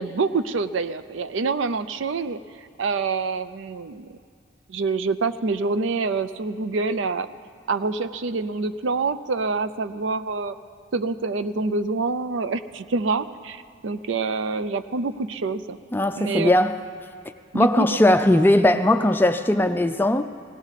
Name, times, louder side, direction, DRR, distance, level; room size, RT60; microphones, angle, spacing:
voice 1, 0.0-2.4 2.8-4.1 4.7-7.3 7.7-10.5 10.9-15.8 16.1-16.5 17.5-17.9, right 4 dB, 80° right, 12 dB, 0.5 m, -26 dB
voice 2, 15.9-16.8 17.5-20.2, left 1 dB, 10° left, 9 dB, 0.4 m, -19 dB
18.0 x 17.5 x 4.1 m, 2.2 s
head